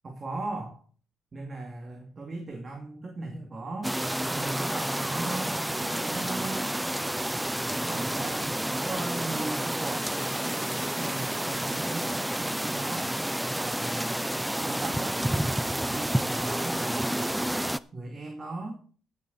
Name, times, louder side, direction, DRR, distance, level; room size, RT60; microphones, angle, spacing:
voice 1, 0.0-0.8 1.3-4.0 4.3-6.7 7.8-10.1 11.0-13.2 13.5-14.2 14.6-17.4 17.9-18.8, right 2 dB, 35° right, 2 dB, 2.4 m, -38 dB
sound 1, 3.8-17.8, right 1 dB, 5° right, 0.5 m, -30 dB
15.5 x 7.7 x 4.2 m, 0.42 s
cardioid pair, 90°, 0 cm